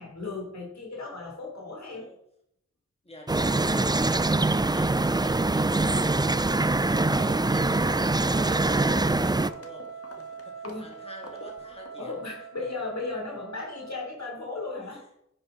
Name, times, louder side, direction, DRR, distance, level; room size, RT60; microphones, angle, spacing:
voice 1, 0.0-2.1 7.1-7.3 10.6-10.9 12.0-15.1, left 3 dB, 70° left, -1 dB, 3.7 m, -36 dB
voice 2, 3.0-6.6 6.8-12.1 14.9-15.0, left 1 dB, 20° left, 0 dB, 2.8 m, -47 dB
sound 1, 3.3-9.5, right 2 dB, 15° right, 0.4 m, -24 dB
Trumpet, 6.8-14.1, right 6 dB, 65° right, 1.7 m, -43 dB
Walk footsteps, 7.1-12.0, left 1 dB, 50° left, 1.7 m, -46 dB
10.0 x 8.7 x 4.1 m, 0.75 s
cardioid pair, 45°, 29 cm